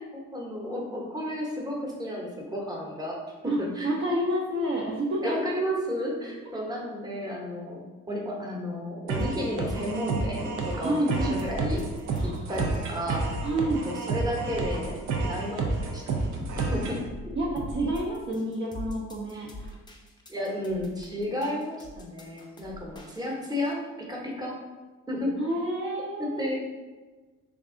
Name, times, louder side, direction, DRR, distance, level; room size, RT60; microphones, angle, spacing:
voice 1, 0.0-3.1 3.4-4.0 5.2-11.8 12.2-13.4 13.8-15.0 15.3-16.3 16.6-17.0 19.3-19.5 20.3-23.8 24.1-24.5 25.1-25.3 26.2-26.5, left 1 dB, 15° right, -2 dB, 0.8 m, -32 dB
voice 2, 3.5-5.4 10.8-11.4 12.1-12.5 13.4-13.9 17.4-19.8 25.4-26.5, right 1 dB, 40° right, -3 dB, 0.6 m, -29 dB
sound 1, 9.1-17.1, right 3 dB, 85° right, 0.6 m, -30 dB
sound 2, 11.4-23.7, left 1 dB, 15° left, 0.5 m, -40 dB
3.2 x 2.5 x 3.7 m, 1.3 s
cardioid pair, 90°, 30 cm